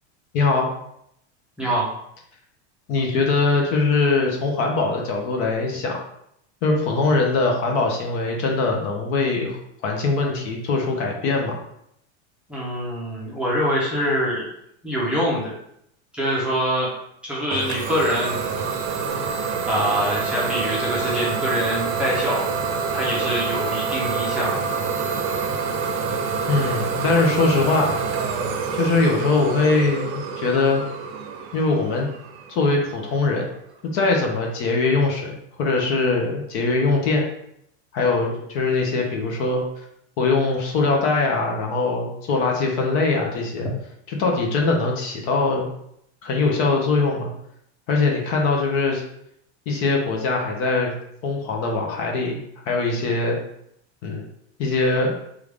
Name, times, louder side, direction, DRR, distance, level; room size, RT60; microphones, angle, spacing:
voice 1, 0.3-0.7 2.9-6.0 6.6-9.6 9.8-11.6 26.5-28.1 28.7-30.8 31.5-32.1 32.5-33.5 33.8-35.3 35.6-37.3 37.9-39.6 40.2-43.7 44.1-45.7 46.2-47.3 47.9-49.0 49.7-50.9 51.2-53.4 54.0-54.2 54.6-55.1, left 3 dB, 40° left, 1 dB, 0.7 m, -22 dB
voice 2, 1.6-1.9 12.5-14.4 14.8-15.5 16.1-16.9 17.2-18.4 19.7-22.5 22.9-24.7 43.6-43.7, equal, 5° right, -8 dB, 0.7 m, -24 dB
Idling / Domestic sounds home sounds, 17.5-33.0, right 5 dB, 70° right, 0.8 m, -27 dB
4.7 x 2.5 x 3.4 m, 0.74 s
supercardioid pair, 165°, 34 cm